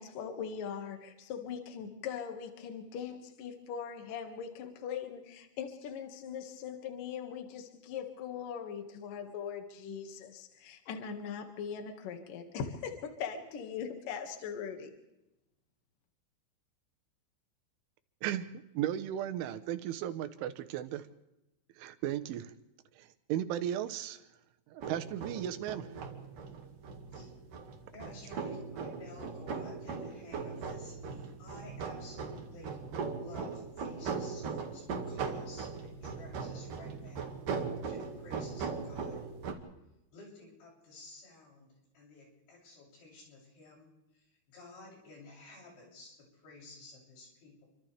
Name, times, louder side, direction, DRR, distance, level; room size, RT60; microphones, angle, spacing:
voice 1, 0.0-14.9, left 7 dB, 55° left, 4 dB, 3.1 m, -40 dB
voice 2, 18.2-21.1 21.8-22.5 23.0-24.2 24.7-25.9, right 11 dB, 90° right, 9 dB, 3.5 m, -35 dB
sound 1, 24.8-39.5, right 5 dB, 55° right, 3.1 m, -39 dB
voice 3, 27.9-32.8 33.2-37.3 37.9-39.3 40.1-47.7, left 2 dB, 70° left, -2 dB, 9.8 m, -53 dB
29.5 x 25.0 x 3.5 m, 0.93 s
omnidirectional pair, 5.4 m